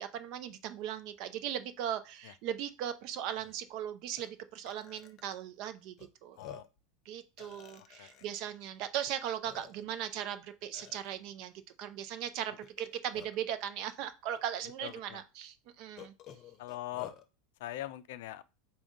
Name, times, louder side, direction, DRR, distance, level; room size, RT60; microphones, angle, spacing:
voice 1, 0.0-6.0 6.2-6.4 7.1-11.5 11.8-16.1, right 10 dB, 55° right, 0.5 m, -38 dB
Burping eructation, 2.9-3.0 3.3-3.5 4.2-4.3 4.7-5.3 6.0-6.1 6.4-6.8 7.4-8.4 9.1-9.2 9.5-10.0 10.7-11.1 12.6-13.5 14.4-14.5 14.9-15.0 16.0-17.2, left 9 dB, 45° left, 0.7 m, -51 dB
voice 2, 14.8-15.2 16.6-17.1 17.6-18.4, left 15 dB, 70° left, 0.3 m, -41 dB
3.5 x 2.2 x 4.0 m
hypercardioid pair, 90°, 0 cm